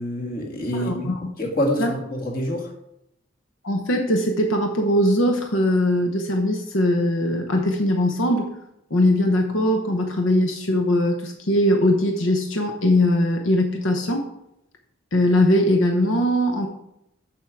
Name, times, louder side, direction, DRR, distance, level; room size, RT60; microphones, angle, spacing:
voice 1, 0.0-1.1 1.4-2.7, equal, 50° left, 0 dB, 1.7 m, -26 dB
voice 2, 0.7-1.2 1.8-1.9 3.6-8.5 8.9-14.2 15.1-16.7, left 1 dB, 85° left, 3 dB, 1.0 m, -20 dB
7.4 x 6.2 x 4.7 m, 0.80 s
head